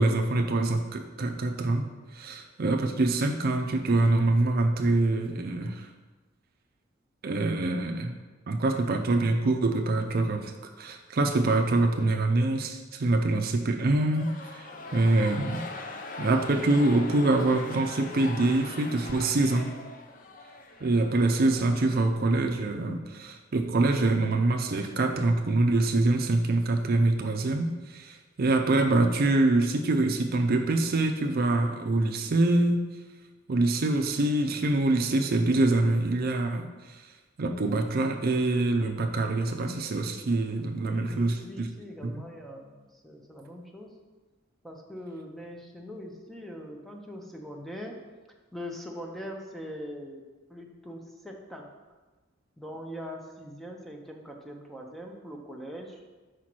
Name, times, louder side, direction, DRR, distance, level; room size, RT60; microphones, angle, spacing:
voice 1, 0.0-1.9 2.1-5.9 7.2-8.1 8.5-10.5 10.8-14.6 14.9-15.7 16.2-19.7 20.8-32.8 33.5-37.0 37.4-41.7 42.1-42.2, right 2 dB, 50° right, 4 dB, 0.5 m, -25 dB
sound 1, 14.0-22.4, left 3 dB, 45° left, 0.6 m, -42 dB
voice 2, 40.8-43.9 44.6-48.0 48.5-50.2 50.5-51.7 52.6-56.0, equal, ahead, 1 dB, 0.7 m, -42 dB
5.0 x 4.4 x 6.1 m, 1.2 s
head